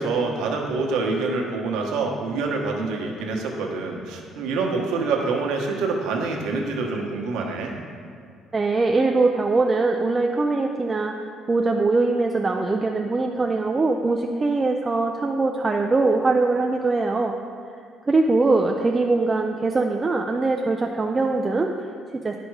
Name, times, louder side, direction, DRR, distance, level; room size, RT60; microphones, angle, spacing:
voice 1, 0.0-7.8, right 3 dB, 85° right, 0 dB, 1.2 m, -26 dB
voice 2, 8.5-17.3 18.1-22.3, right 3 dB, 15° right, 2 dB, 0.3 m, -22 dB
10.5 x 5.2 x 4.8 m, 2.2 s
cardioid pair, 165°, 0 cm